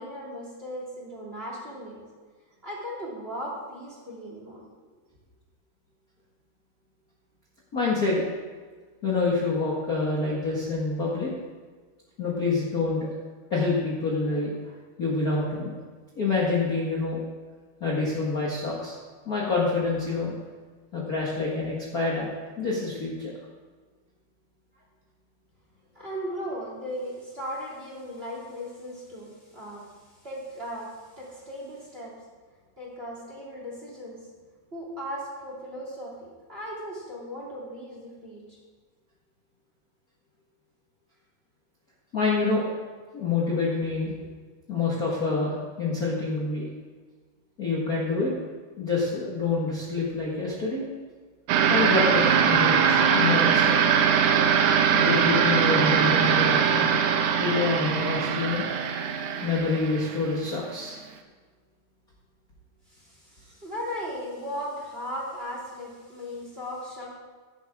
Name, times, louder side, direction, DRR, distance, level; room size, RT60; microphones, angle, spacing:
voice 1, 0.0-2.0 2.6-4.6 25.9-32.1 32.8-34.3 34.7-38.6 43.8-43.9 44.2-44.3 62.9-67.2, equal, 15° right, -3 dB, 2.6 m, -37 dB
voice 2, 7.7-8.2 9.0-11.3 12.2-13.0 13.5-14.5 15.0-15.7 16.2-17.2 17.8-18.9 19.2-20.3 20.9-22.3 22.6-23.3 42.1-42.6 43.1-44.1 44.7-46.6 47.6-48.3 48.8-50.8 51.7-53.8 54.9-56.9 57.4-58.7 59.4-61.0, left 3 dB, 50° left, -5 dB, 1.0 m, -27 dB
sound 1, 51.5-60.6, right 7 dB, 90° right, 3.0 m, -22 dB
16.5 x 11.0 x 3.7 m, 1.5 s
omnidirectional pair, 4.7 m